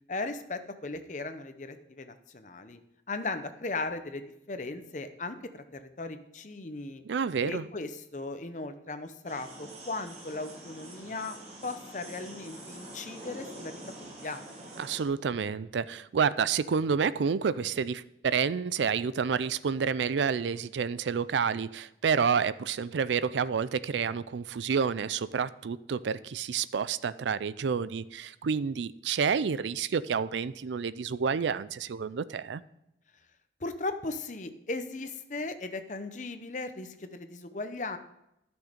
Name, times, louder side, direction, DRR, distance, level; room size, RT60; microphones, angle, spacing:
voice 1, 0.1-2.8 3.1-7.0 7.4-11.4 11.6-13.7 14.2-14.5 33.6-38.0, left 3 dB, 45° left, 0.7 m, -37 dB
voice 2, 7.0-7.7 14.8-32.6, right 6 dB, 85° right, 0.4 m, -29 dB
sound 1, 9.3-15.0, right 1 dB, 35° right, 2.1 m, -46 dB
11.5 x 6.3 x 5.1 m
head